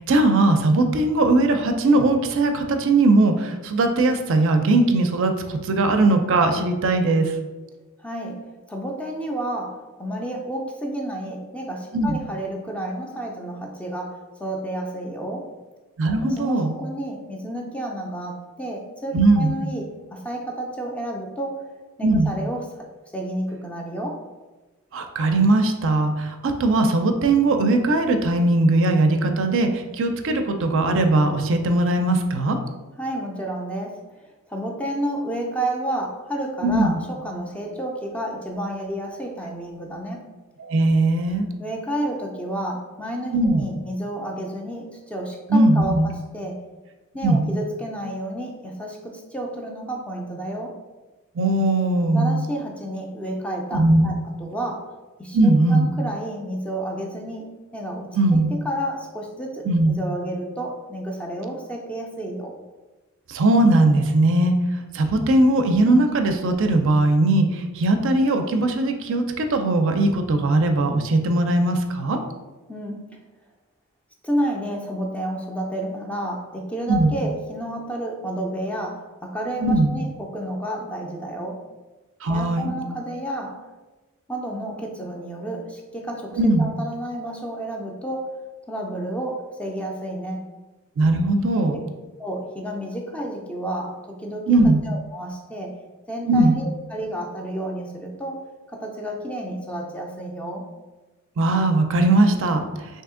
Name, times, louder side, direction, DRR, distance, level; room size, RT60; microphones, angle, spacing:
voice 1, 0.0-7.3 11.9-12.2 16.0-16.7 19.1-19.5 22.0-22.3 24.9-32.6 36.6-37.0 40.6-41.5 43.3-43.7 45.5-46.1 47.2-47.5 51.4-52.4 53.7-54.1 55.3-55.9 58.1-58.5 59.7-60.0 63.3-64.5 64.9-72.2 76.9-77.1 79.6-79.9 82.2-82.7 86.3-86.7 91.0-91.8 94.5-94.8 96.3-96.5 101.4-102.7, right 2 dB, 60° right, 5 dB, 0.4 m, -19 dB
voice 2, 8.0-15.5 16.2-21.7 22.0-22.9 23.1-24.2 33.0-34.2 34.5-40.3 41.6-46.6 47.1-50.8 52.1-54.9 55.2-62.5 72.7-73.2 74.2-81.6 82.3-83.7 84.3-88.4 88.7-90.5 91.7-91.8 92.2-95.8 96.1-100.7, right 1 dB, 5° left, 0 dB, 0.4 m, -31 dB
3.4 x 2.7 x 3.6 m, 1.2 s
head